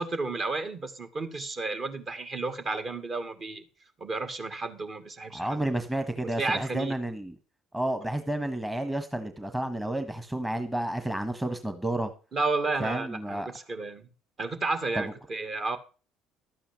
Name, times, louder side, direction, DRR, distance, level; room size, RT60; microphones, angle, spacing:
voice 1, 0.0-3.6 4.0-5.6 6.4-7.0 12.3-14.1 14.4-15.8, right 3 dB, 40° right, 2.1 m, -32 dB
voice 2, 5.3-7.3 7.7-12.1 12.8-13.5 15.0-15.1, right 1 dB, 10° right, 1.5 m, -31 dB
12.5 x 8.8 x 5.3 m
figure-of-eight pair, 55°, 0 cm